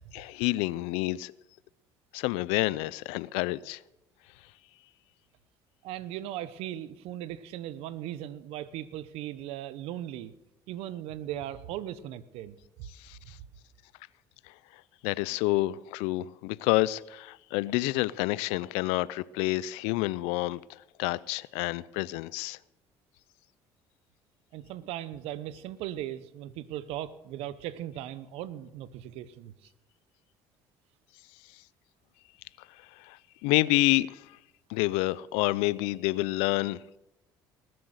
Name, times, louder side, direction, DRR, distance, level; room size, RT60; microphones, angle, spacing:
voice 1, 0.1-1.3 2.1-3.8 13.0-13.4 14.5-14.6 15.0-22.6 32.9-34.4 34.7-37.0, left 19 dB, 80° left, 0.5 m, -29 dB
voice 2, 5.8-10.3 10.7-12.9 24.5-29.5, right 12 dB, 75° right, 0.9 m, -38 dB
20.0 x 7.8 x 6.5 m
supercardioid pair, 70°, 10 cm